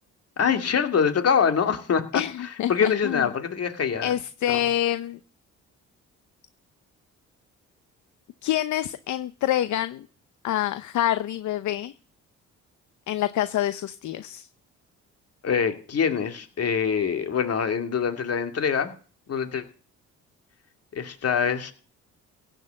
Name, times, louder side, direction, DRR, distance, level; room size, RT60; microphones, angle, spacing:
voice 1, 0.4-4.1 4.5-4.6 15.4-18.9 19.3-19.6 20.9-21.7, left 7 dB, 55° left, 7 dB, 2.4 m, -24 dB
voice 2, 2.1-3.3 4.0-5.2 8.4-10.1 10.4-11.9 13.1-14.5, left 12 dB, 70° left, 13 dB, 0.8 m, -26 dB
16.5 x 6.3 x 8.7 m, 0.40 s
cardioid pair, 90°, 30 cm